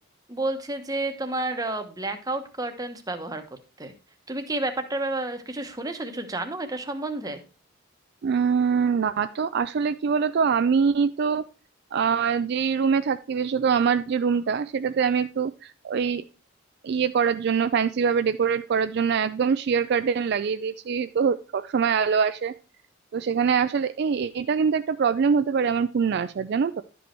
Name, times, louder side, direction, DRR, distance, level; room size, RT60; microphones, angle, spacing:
voice 1, 0.3-3.4 3.8-3.9 4.3-7.4, right 2 dB, 20° right, 6 dB, 1.0 m, -30 dB
voice 2, 8.2-11.4 11.9-16.2 16.8-22.5 23.1-26.8, right 6 dB, 55° right, 11 dB, 0.3 m, -24 dB
11.5 x 5.2 x 4.4 m, 0.33 s
head